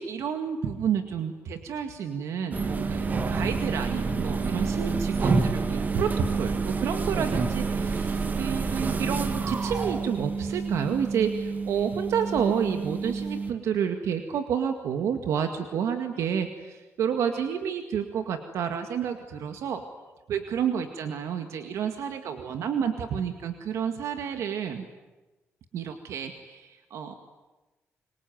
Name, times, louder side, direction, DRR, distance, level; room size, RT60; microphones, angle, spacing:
voice 1, 0.0-19.8 20.3-24.9 25.7-27.1, right 7 dB, 85° right, 7 dB, 2.0 m, -30 dB
sound 1, 2.5-13.5, right 4 dB, 35° right, 2.0 m, -28 dB
26.5 x 24.0 x 9.4 m, 1.1 s
cardioid pair, 120°, 5 cm